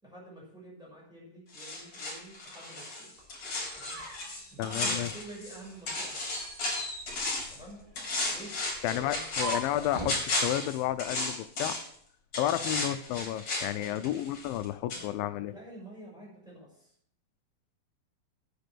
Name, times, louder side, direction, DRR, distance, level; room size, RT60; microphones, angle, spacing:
voice 1, 0.0-3.1 3.7-4.0 4.5-6.3 7.5-7.8 8.3-9.2 12.5-12.8 13.7-14.2 14.9-16.9, right 1 dB, ahead, -4 dB, 6.3 m, -48 dB
sound 1, 1.5-5.6 5.9-7.6 8.0-11.9 12.3-14.6 14.9-15.0, left 2 dB, 45° left, 5.3 m, -34 dB
sound 2, 3.2-5.2 5.6-10.2, right 1 dB, 35° right, 5.8 m, -42 dB
voice 2, 4.6-5.1 8.8-11.8 12.4-15.5, left 13 dB, 80° left, 12 dB, 2.2 m, -31 dB
10.5 x 9.1 x 6.1 m, 0.64 s
omnidirectional pair, 4.2 m